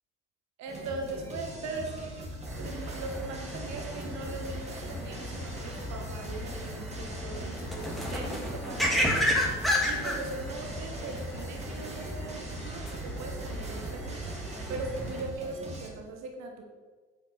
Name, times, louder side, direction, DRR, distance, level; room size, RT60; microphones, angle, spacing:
voice 1, 0.6-2.2 2.6-16.6, right 3 dB, 50° right, 3 dB, 1.3 m, -40 dB
sound 1, 0.7-15.9, equal, 20° right, 1.9 m, -41 dB
sound 2, 2.5-15.2, equal, ahead, 1.6 m, -33 dB
8.4 x 3.6 x 6.7 m, 1.4 s
figure-of-eight pair, 50°, 36 cm